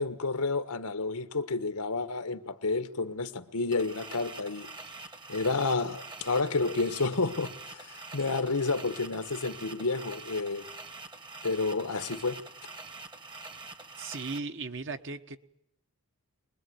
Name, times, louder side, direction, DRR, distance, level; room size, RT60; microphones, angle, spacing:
voice 1, 0.0-4.7 5.3-10.6 11.4-12.4, left 3 dB, 85° left, 1.4 m, -30 dB
sound 1, 3.7-14.4, right 3 dB, 20° right, 1.1 m, -45 dB
voice 2, 14.0-15.4, right 4 dB, 55° right, 1.3 m, -37 dB
25.0 x 21.0 x 9.5 m
head